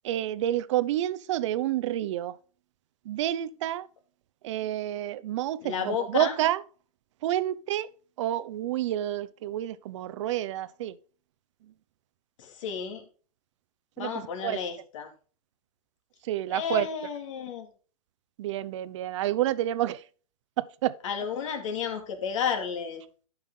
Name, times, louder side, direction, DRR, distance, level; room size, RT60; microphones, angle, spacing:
voice 1, 0.0-2.4 3.0-3.9 4.4-6.6 7.2-7.9 8.2-11.0 11.6-11.7 14.0-14.6 16.2-16.9 18.4-20.0 20.6-21.0, right 13 dB, 55° right, 0.8 m, -29 dB
voice 2, 5.6-6.4 12.4-13.0 14.0-15.1 16.5-17.7 21.0-23.0, left 7 dB, 60° left, 2.5 m, -32 dB
12.0 x 5.7 x 3.7 m
hypercardioid pair, 135°, 19 cm